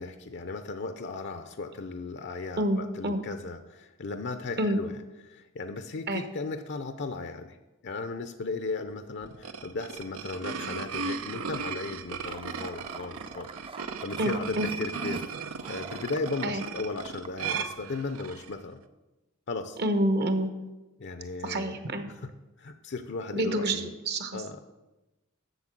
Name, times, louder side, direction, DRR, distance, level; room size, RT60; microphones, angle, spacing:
voice 1, 0.0-5.0 5.2-7.6 7.8-18.8 19.5-19.8 21.0-21.8 22.1-22.3 22.6-23.9 24.3-24.7, left 3 dB, 55° left, 8 dB, 0.5 m, -36 dB
voice 2, 2.6-3.2 4.6-4.8 6.1-6.2 14.2-14.7 16.4-16.6 19.8-20.5 21.4-22.0 23.3-24.4, right 1 dB, 50° right, 8 dB, 1.0 m, -28 dB
sound 1, 9.2-18.5, right 5 dB, 85° right, 0.6 m, -36 dB
sound 2, 12.3-17.5, right 4 dB, 25° right, 0.4 m, -45 dB
7.9 x 6.8 x 7.4 m, 1.1 s
head